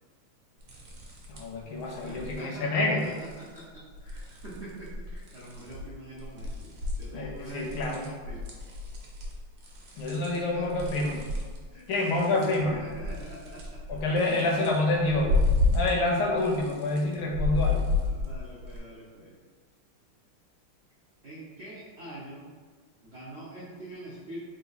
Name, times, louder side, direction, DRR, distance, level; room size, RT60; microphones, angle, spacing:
sound 1, 0.6-1.6 1.8-2.4 3.0-3.6 3.9-5.9 6.2-16.1 16.4-18.8, left 3 dB, 60° right, 1.1 m, -32 dB
voice 1, 1.3-3.0 7.1-8.0 10.0-11.2 11.9-12.8 13.9-15.4 15.7-17.9, left 2 dB, 80° left, 0 dB, 1.4 m, -27 dB
voice 2, 2.0-8.5 10.3-11.1 11.7-14.0 17.5-19.4 21.2-22.5 23.0-24.4, right 1 dB, 85° right, -8 dB, 0.6 m, -44 dB
3.9 x 2.5 x 3.9 m, 1.5 s
omnidirectional pair, 2.3 m